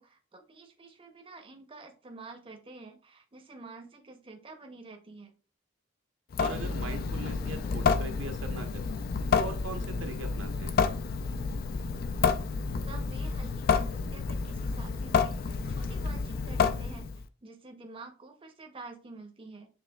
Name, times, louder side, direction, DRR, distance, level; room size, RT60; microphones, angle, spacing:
voice 1, 0.0-5.3 12.9-17.1 17.4-19.7, right 3 dB, 25° right, 4 dB, 0.7 m, -48 dB
Water tap faucet / Sink (filling or washing) / Drip, 6.3-17.2, left 5 dB, 50° left, 0.3 m, -30 dB
voice 2, 6.4-8.9 9.3-10.8, right 2 dB, 75° right, 5 dB, 0.8 m, -40 dB
7.0 x 3.2 x 2.2 m, 0.35 s
head